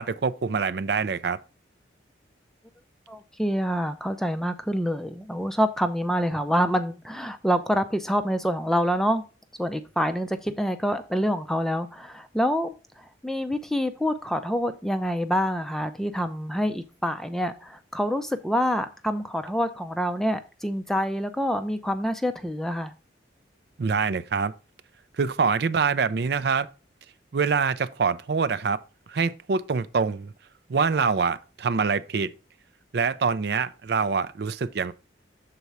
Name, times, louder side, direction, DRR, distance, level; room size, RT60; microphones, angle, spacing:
voice 1, 0.0-1.4 23.8-24.5 25.2-26.7 27.3-28.8 29.1-30.3 30.7-32.3 32.9-34.9, right 5 dB, 55° right, 0.4 m, -25 dB
voice 2, 3.1-9.2 9.6-22.9, equal, ahead, 0.4 m, -26 dB
6.8 x 4.1 x 4.6 m
head